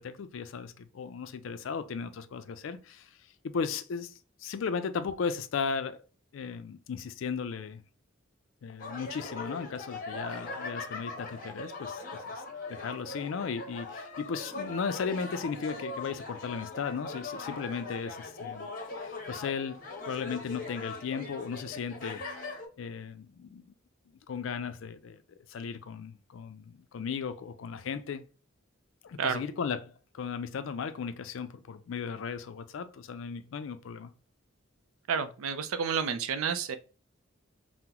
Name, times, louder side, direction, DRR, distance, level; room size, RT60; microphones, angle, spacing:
voice 1, 0.0-3.1 3.4-4.1 4.4-6.0 6.3-7.8 8.6-12.4 12.7-18.7 19.0-19.8 20.1-22.2 22.8-23.7 24.3-28.2 29.0-34.1, left 6 dB, 65° left, 0.3 m, -36 dB
sound 1, 8.8-22.7, left 3 dB, 40° left, 0.7 m, -40 dB
voice 2, 35.1-36.7, right 6 dB, 90° right, 0.4 m, -30 dB
2.9 x 2.0 x 3.6 m
head